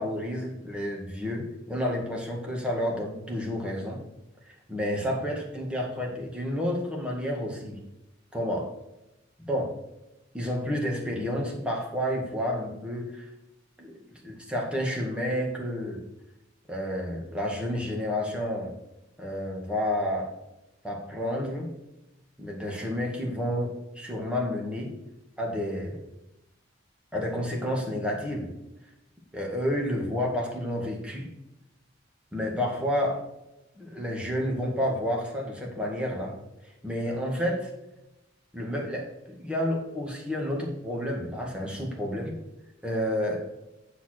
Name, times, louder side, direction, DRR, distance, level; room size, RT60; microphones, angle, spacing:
voice 1, 0.0-4.0 4.5-7.8 8.3-8.7 9.5-9.7 10.3-13.3 13.8-16.0 16.7-18.7 19.2-20.3 20.8-21.7 22.4-24.9 25.4-26.0 27.1-28.5 29.3-31.3 32.3-33.2 33.8-36.4 36.8-37.7 38.5-42.4 42.8-43.5, equal, 5° right, -2 dB, 1.9 m, -30 dB
7.3 x 6.9 x 4.5 m, 0.91 s
head